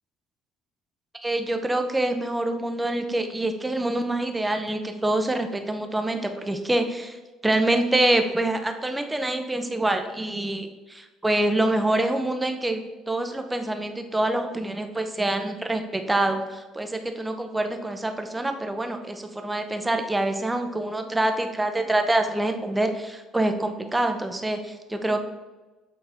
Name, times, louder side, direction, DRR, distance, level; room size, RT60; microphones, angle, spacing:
voice 1, 1.2-7.2 7.4-12.8 13.1-25.2, right 1 dB, 10° right, 6 dB, 0.6 m, -26 dB
8.0 x 4.1 x 3.5 m, 1.2 s
cardioid pair, 120°, 0 cm